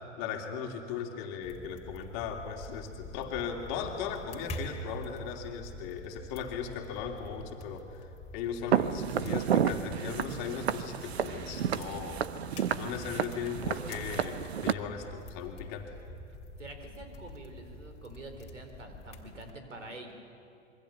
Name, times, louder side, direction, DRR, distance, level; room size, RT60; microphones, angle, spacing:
voice 1, 0.2-7.8 8.3-12.2 12.7-15.9, left 7 dB, 35° left, 3 dB, 2.8 m, -38 dB
sound 1, 1.4-19.5, left 1 dB, 15° left, 2.7 m, -46 dB
Walk footsteps, 8.7-14.7, right 8 dB, 55° right, 1.1 m, -31 dB
voice 2, 16.6-20.1, right 2 dB, 70° right, 6 dB, 4.2 m, -46 dB
26.5 x 23.5 x 8.2 m, 2.5 s
figure-of-eight pair, 105°, 38 cm